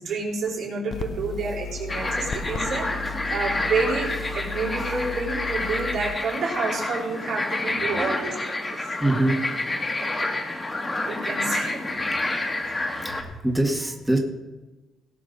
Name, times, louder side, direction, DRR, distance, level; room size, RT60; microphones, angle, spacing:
voice 1, 0.0-2.9 3.3-8.3 10.0-10.3 11.1-12.1, right 4 dB, 70° right, -2 dB, 3.6 m, -29 dB
sound 1, 0.9-6.2, left 4 dB, 55° left, 0.9 m, -35 dB
voice 2, 1.6-2.7 3.0-3.4 4.8-4.9 8.0-8.5 9.0-10.1 11.9-12.3 12.8-14.2, right 1 dB, 5° right, 1 dB, 1.8 m, -28 dB
sound 2, 1.9-13.2, left 2 dB, 25° left, 1.8 m, -29 dB
17.5 x 6.2 x 5.4 m, 1.2 s
cardioid pair, 90°, 0 cm